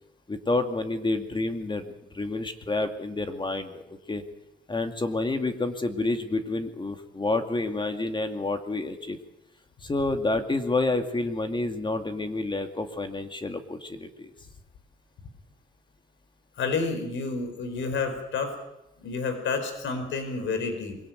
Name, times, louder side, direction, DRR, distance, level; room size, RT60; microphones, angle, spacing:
voice 1, 0.3-4.2 4.7-9.2 9.8-14.3, left 2 dB, 25° left, 7 dB, 2.4 m, -29 dB
voice 2, 16.5-18.5 19.0-21.0, left 4 dB, 70° left, 9 dB, 4.9 m, -29 dB
23.0 x 17.0 x 9.3 m, 0.92 s
cardioid pair, 90°, 20 cm